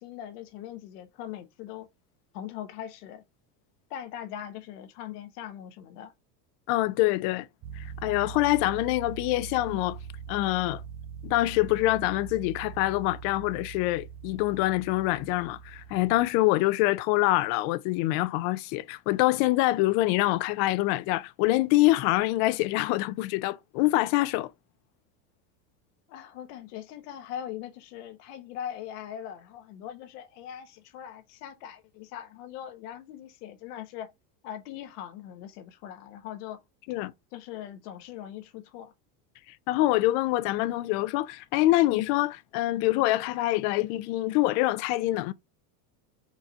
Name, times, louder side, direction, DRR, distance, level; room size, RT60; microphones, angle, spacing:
voice 1, 0.0-1.9 2.3-3.2 3.9-6.1 26.1-34.1 34.4-36.6 37.3-38.9, left 10 dB, 80° left, 1.1 m, -41 dB
voice 2, 6.7-7.5 7.8-10.0 10.3-10.8 11.2-24.5 36.9-37.1 39.7-45.3, left 17 dB, 60° left, 0.5 m, -25 dB
sound 1, 7.6-16.3, right 7 dB, 30° right, 0.6 m, -42 dB
4.6 x 2.6 x 4.4 m
supercardioid pair, 135°, 47 cm